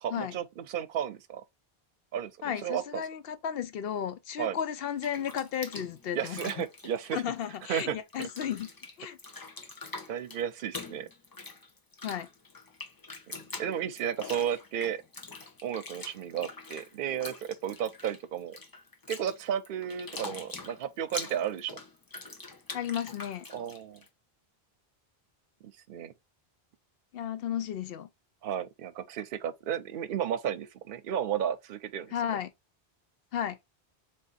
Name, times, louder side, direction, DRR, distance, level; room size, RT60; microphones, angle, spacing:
voice 1, 0.0-1.4 2.1-2.3 2.6-3.0 4.4-4.6 6.1-7.2 7.7-8.3 10.1-11.1 13.6-15.0 15.6-18.6 19.1-21.8 23.5-24.0 25.6-26.1 28.4-32.1, right 9 dB, 65° right, 0.7 m, -33 dB
voice 2, 2.4-6.7 7.1-8.7 9.0-9.2 12.0-12.3 22.7-23.5 27.1-28.1 32.1-32.5 33.3-33.6, left 9 dB, 70° left, 0.7 m, -34 dB
Bathtub (filling or washing), 4.8-7.8 8.1-24.1, left 3 dB, 25° left, 0.6 m, -44 dB
3.8 x 2.6 x 4.0 m
omnidirectional pair, 1.1 m